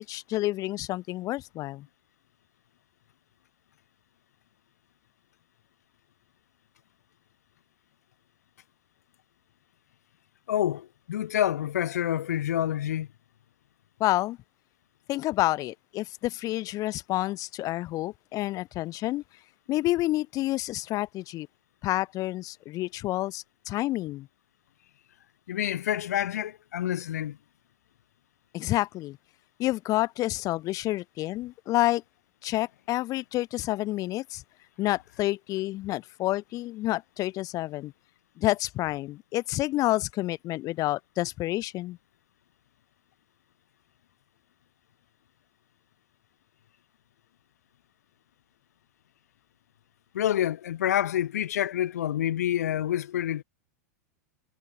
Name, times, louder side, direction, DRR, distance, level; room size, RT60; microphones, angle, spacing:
voice 1, 0.0-1.9 14.0-14.4 15.1-19.2 19.7-21.5 21.8-24.3 28.5-29.2 29.6-32.0 32.4-34.4 34.8-37.9 38.4-42.0, left 17 dB, 40° left, 6.7 m, -29 dB
voice 2, 10.5-13.1 25.5-27.4 50.1-53.4, left 11 dB, 70° left, 4.7 m, -28 dB
hypercardioid pair, 100°, 9 cm